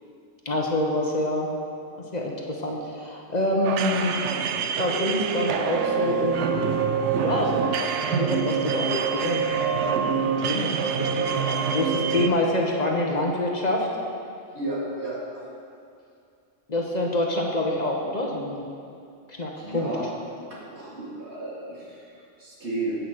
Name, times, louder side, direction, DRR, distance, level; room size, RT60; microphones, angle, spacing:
voice 1, 0.4-1.5 2.1-4.1 4.8-6.8 7.2-9.5 9.8-13.9 16.7-18.6 19.3-19.9, left 1 dB, 40° left, -1 dB, 1.0 m, -26 dB
sound 1, 3.6-12.3, right 7 dB, 90° right, 0.9 m, -26 dB
voice 2, 14.5-15.5 19.6-23.0, right 2 dB, 75° right, -6 dB, 2.5 m, -33 dB
8.8 x 5.5 x 7.3 m, 2.4 s
omnidirectional pair, 1.2 m